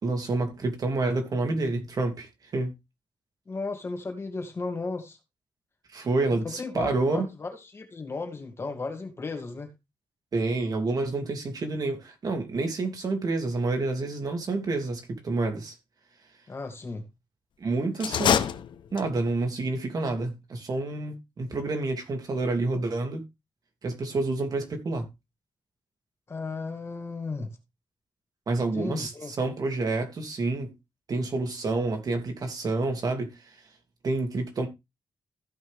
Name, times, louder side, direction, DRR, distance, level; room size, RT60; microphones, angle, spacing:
voice 1, 0.0-2.7 5.9-7.3 10.3-15.8 17.6-18.4 18.9-23.2 23.8-25.1 28.5-30.7 31.1-33.6 34.0-34.7, right 3 dB, 50° right, 2.6 m, -28 dB
voice 2, 3.5-5.2 6.4-9.7 16.5-17.0 26.3-27.5 28.7-29.3, left 3 dB, 35° left, 2.5 m, -35 dB
sound 1, 17.9-19.3, left 8 dB, 85° left, 0.9 m, -26 dB
15.5 x 5.6 x 3.5 m
wide cardioid pair, 120°, 8 cm